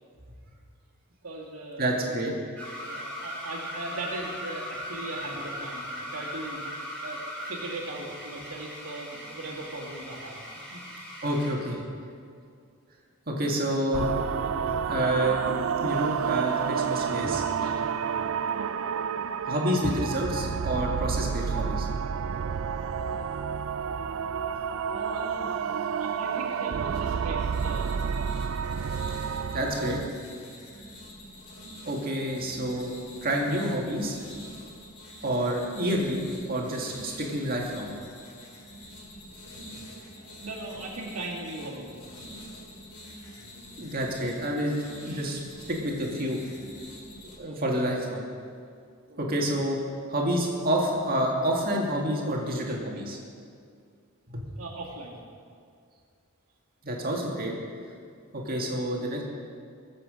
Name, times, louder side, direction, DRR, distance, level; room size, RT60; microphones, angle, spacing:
voice 1, 1.2-2.2 2.8-10.4 10.7-11.0 17.6-17.7 24.9-28.2 40.1-41.9 43.2-43.4 45.0-45.3 47.1-47.6 49.1-49.2 54.6-55.2, right 2 dB, 80° right, -5 dB, 2.3 m, -39 dB
voice 2, 1.8-2.3 11.2-11.9 13.3-14.1 14.7-15.4 15.8-17.4 19.5-21.9 29.5-30.0 31.8-33.0 33.2-34.2 35.2-37.9 43.8-44.7 45.0-45.4 45.7-46.4 47.4-48.2 49.2-49.8 50.1-53.2 54.3-54.5 56.8-57.5 58.3-59.2, right 1 dB, 40° right, -1 dB, 2.1 m, -28 dB
sound 1, 2.6-11.6, equal, 5° left, 3.0 m, -39 dB
sound 2, 13.9-30.1, right 7 dB, 60° right, 0.4 m, -30 dB
sound 3, 27.5-47.3, equal, 90° left, 3.2 m, -46 dB
20.5 x 7.7 x 5.1 m, 2.2 s
head